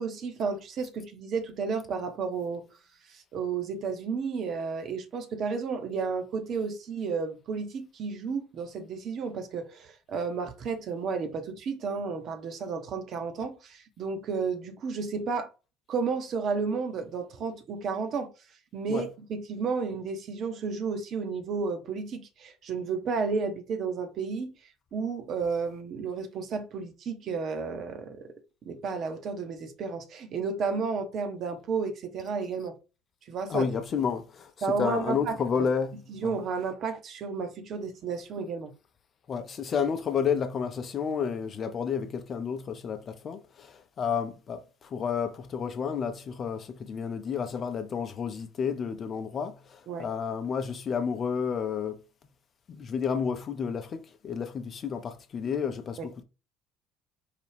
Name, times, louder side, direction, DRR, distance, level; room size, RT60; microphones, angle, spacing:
voice 1, 0.0-2.6 3.1-15.5 15.9-18.3 18.7-24.5 24.9-28.3 28.7-32.8 33.3-33.7 34.6-35.7 36.1-38.7 49.9-50.1 56.0-56.1, right 5 dB, 45° right, 0.7 m, -32 dB
voice 2, 33.5-34.5 34.8-36.4 39.3-52.0 52.7-56.2, left 6 dB, 40° left, 0.6 m, -31 dB
4.8 x 2.3 x 3.3 m
figure-of-eight pair, 55°, 0 cm